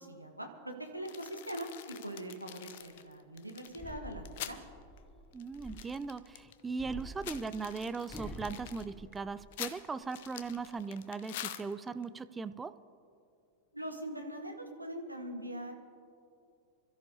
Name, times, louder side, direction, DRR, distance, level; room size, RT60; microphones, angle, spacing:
voice 1, 0.0-4.6 13.7-15.7, right 1 dB, 90° right, 3 dB, 1.5 m, -42 dB
sound 1, 1.1-4.6 5.0-5.1 5.3-6.6 7.0-12.0, left 12 dB, 55° left, 0.7 m, -46 dB
sound 2, 3.7-6.2 6.8-9.8 10.2-10.8, left 1 dB, 10° left, 0.9 m, -48 dB
voice 2, 5.3-12.7, right 4 dB, 15° right, 14 dB, 0.4 m, -39 dB
26.5 x 13.5 x 2.9 m, 2.5 s
figure-of-eight pair, 90°, 0 cm